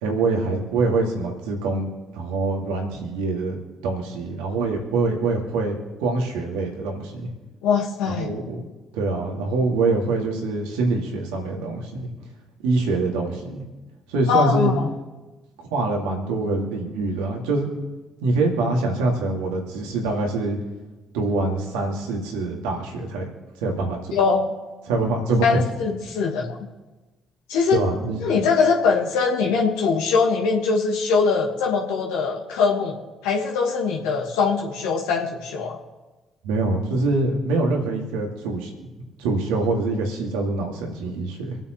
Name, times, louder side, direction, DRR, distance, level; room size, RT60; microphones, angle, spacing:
voice 1, 0.0-3.6 3.8-5.7 6.0-7.3 8.0-8.6 8.9-12.1 12.6-13.6 14.1-14.7 15.7-17.7 18.2-20.6 21.1-23.3 23.6-24.0 24.9-25.5 27.7-28.4 36.4-38.7 39.2-41.6, right 3 dB, 80° right, 0 dB, 2.4 m, -24 dB
voice 2, 7.6-8.3 14.3-14.9 24.1-24.5 25.4-26.6 27.5-27.8 28.2-33.0 33.2-35.8, left 5 dB, 75° left, -1 dB, 1.6 m, -22 dB
26.5 x 8.9 x 3.2 m, 1.2 s
hypercardioid pair, 45°, 0 cm